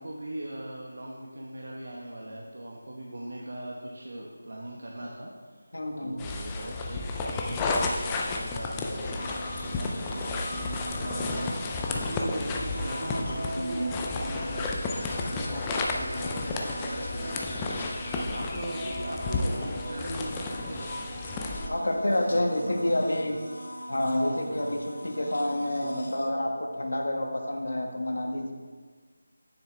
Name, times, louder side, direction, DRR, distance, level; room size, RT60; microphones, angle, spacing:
voice 1, 0.0-10.7 10.9-21.2 22.2-23.3 24.4-24.8, right 1 dB, 65° right, -2 dB, 1.1 m, -40 dB
voice 2, 5.7-6.2 21.7-23.4 23.9-28.5, left 1 dB, 85° left, 2 dB, 1.4 m, -28 dB
sound 1, 6.2-21.7, left 3 dB, 10° left, 0.3 m, -32 dB
sound 2, 8.9-26.3, right 1 dB, 70° left, 1.6 m, -40 dB
sound 3, 11.2-23.6, equal, 5° right, 1.8 m, -44 dB
9.5 x 7.3 x 3.3 m, 1.5 s
figure-of-eight pair, 180°, 0 cm